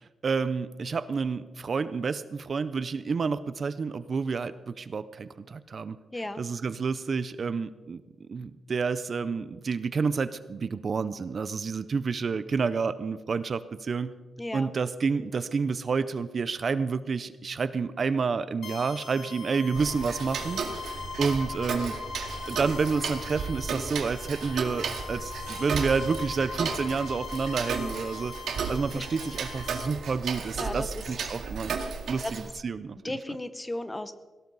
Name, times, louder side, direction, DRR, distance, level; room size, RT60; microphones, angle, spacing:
voice 1, 0.2-8.0 8.3-14.1 14.5-20.6 21.2-22.0 22.5-28.3 28.7-31.8 32.1-33.2, right 5 dB, 35° right, 14 dB, 0.5 m, -29 dB
voice 2, 6.1-6.4 14.4-14.7 28.9-29.0 30.6-30.9 32.2-32.3 33.0-34.1, left 1 dB, 10° left, 11 dB, 0.7 m, -34 dB
sound 1, 18.6-29.9, left 4 dB, 70° left, 2.8 m, -40 dB
Tick-tock, 19.7-32.5, right 5 dB, 85° right, 2.0 m, -35 dB
sound 2, 20.2-27.3, left 1 dB, 45° left, 4.7 m, -46 dB
17.5 x 17.5 x 4.0 m, 1.2 s
wide cardioid pair, 175°, 0 cm